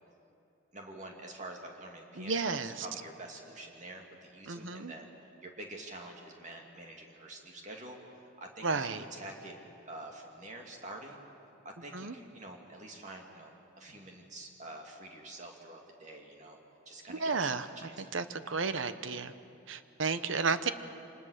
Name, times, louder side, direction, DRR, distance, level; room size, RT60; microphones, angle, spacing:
voice 1, 0.7-5.1 5.4-9.6 9.9-11.2 11.6-16.6 16.9-18.1 18.6-19.0, right 2 dB, 35° right, 1 dB, 2.5 m, -47 dB
voice 2, 2.2-2.9 4.5-4.9 8.6-9.0 11.9-12.1 17.1-17.7 18.1-19.3 19.7-20.7, right 4 dB, 70° right, 12 dB, 0.9 m, -32 dB
25.5 x 20.0 x 6.5 m, 2.8 s
head